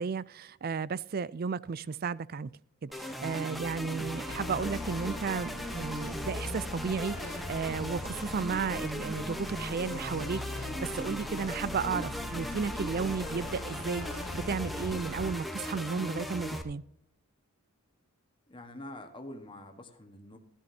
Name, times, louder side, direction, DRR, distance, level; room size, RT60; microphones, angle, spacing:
voice 1, 0.0-2.5 2.8-16.8, right 5 dB, 40° right, 0.4 m, -34 dB
sound 1, 2.9-16.6, equal, ahead, 1.0 m, -38 dB
sound 2, 4.3-15.4, left 2 dB, 75° left, 0.8 m, -41 dB
voice 2, 18.5-20.4, left 1 dB, 20° left, 1.4 m, -45 dB
13.5 x 13.0 x 2.8 m
head